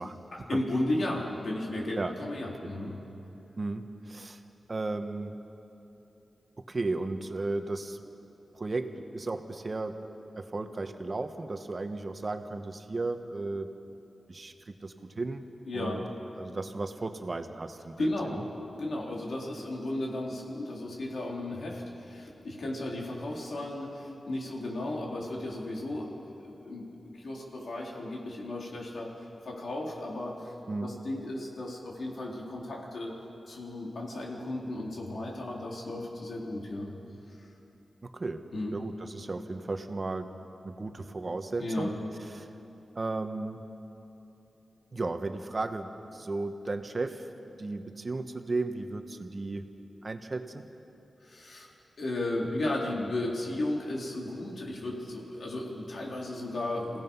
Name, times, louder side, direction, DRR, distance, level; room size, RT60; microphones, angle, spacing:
voice 1, 0.3-3.0 15.7-16.1 18.0-18.4 18.7-26.1 26.4-29.1 29.4-30.5 30.8-33.1 33.5-36.9 37.4-37.5 38.5-38.7 41.6-41.9 51.2-51.7 52.0-57.0, left 1 dB, 70° left, -2 dB, 3.9 m, -34 dB
voice 2, 3.6-4.4 4.7-5.4 6.7-8.0 8.5-10.0 10.4-13.7 14.3-15.4 15.7-16.0 16.4-18.4 30.7-30.9 38.0-38.4 38.7-40.3 40.6-41.9 42.3-42.5 42.9-43.6 44.9-47.3 47.6-49.7 50.0-50.6, right 3 dB, 45° right, 7 dB, 1.3 m, -35 dB
28.0 x 16.5 x 5.6 m, 2.9 s
wide cardioid pair, 75°, 0 cm